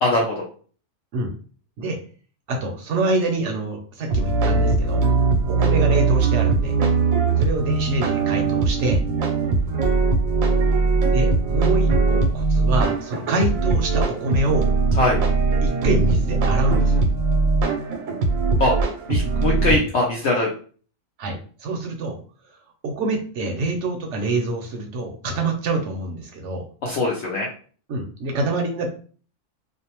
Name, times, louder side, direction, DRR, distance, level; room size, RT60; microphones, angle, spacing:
voice 1, 0.0-0.5 15.0-15.2 18.6-18.7 19.1-20.5 26.8-27.5, left 2 dB, 65° left, -3 dB, 0.8 m, -21 dB
voice 2, 2.5-5.0 5.4-6.7 7.4-9.0 11.1-14.7 15.6-17.0 21.2-22.2 22.8-26.7 27.9-28.9, right 2 dB, 70° right, 3 dB, 0.8 m, -26 dB
sound 1, 4.1-19.8, right 4 dB, 90° right, 1.0 m, -20 dB
2.5 x 2.1 x 2.8 m, 0.42 s
omnidirectional pair, 1.4 m